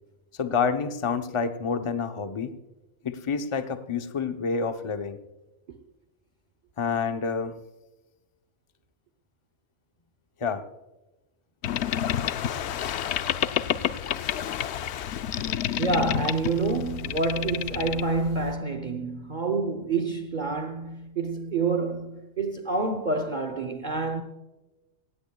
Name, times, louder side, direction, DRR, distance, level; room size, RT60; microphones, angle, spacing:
voice 1, 0.4-2.6 3.0-5.2 6.8-7.6 10.4-10.6, left 5 dB, 30° left, 0.8 m, -28 dB
Boat Water vehicle, 11.6-18.5, left 10 dB, 70° left, 0.8 m, -29 dB
voice 2, 15.8-24.2, right 3 dB, 45° right, 0.9 m, -28 dB
17.0 x 16.5 x 2.3 m
omnidirectional pair, 1.2 m